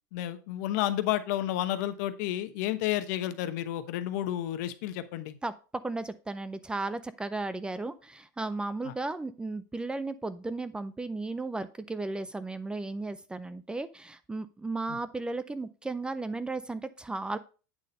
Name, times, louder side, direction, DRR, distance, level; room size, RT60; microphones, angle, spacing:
voice 1, 0.1-5.4 8.8-8.9 14.9-15.0, left 13 dB, 65° left, 11 dB, 1.0 m, -31 dB
voice 2, 5.8-17.4, right 3 dB, 10° right, 14 dB, 0.4 m, -35 dB
8.5 x 4.1 x 5.3 m, 0.36 s
supercardioid pair, 120°, 10 cm